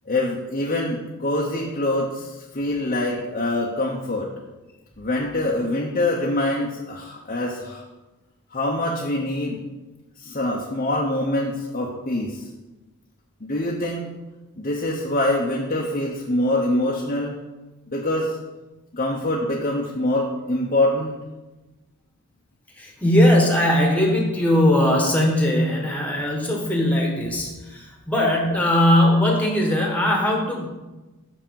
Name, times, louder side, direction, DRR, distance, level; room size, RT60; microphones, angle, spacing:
voice 1, 0.1-4.3 5.0-7.8 8.5-9.6 10.2-12.5 13.4-14.1 14.6-17.4 17.9-18.4 18.9-21.2, left 1 dB, 35° left, -3 dB, 0.9 m, -24 dB
voice 2, 22.8-30.7, left 1 dB, 5° left, 0 dB, 1.4 m, -20 dB
5.9 x 5.9 x 7.0 m, 1.1 s
head